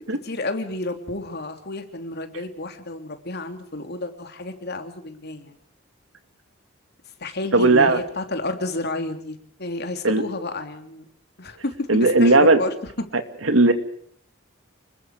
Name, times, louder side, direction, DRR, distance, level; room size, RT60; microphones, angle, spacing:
voice 1, 0.2-5.6 7.2-11.1 11.4-12.7, left 2 dB, 55° left, 6 dB, 3.3 m, -31 dB
voice 2, 7.5-8.0 10.0-10.2 11.9-12.6 13.5-13.7, right 2 dB, 75° right, 8 dB, 2.6 m, -16 dB
29.5 x 21.0 x 5.0 m, 0.62 s
head